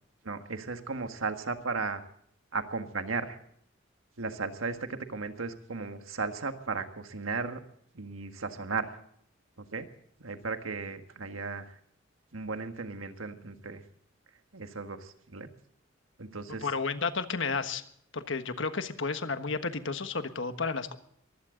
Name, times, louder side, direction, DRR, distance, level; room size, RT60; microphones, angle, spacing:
voice 1, 0.2-2.0 2.5-3.4 4.2-7.6 7.9-8.9 9.6-9.9 10.2-11.7 12.3-13.8 14.5-15.5 16.2-16.7, right 4 dB, 85° right, 7 dB, 1.6 m, -35 dB
voice 2, 16.5-17.8 18.1-21.0, left 4 dB, 65° left, 9 dB, 1.4 m, -32 dB
22.5 x 16.0 x 3.8 m, 0.68 s
head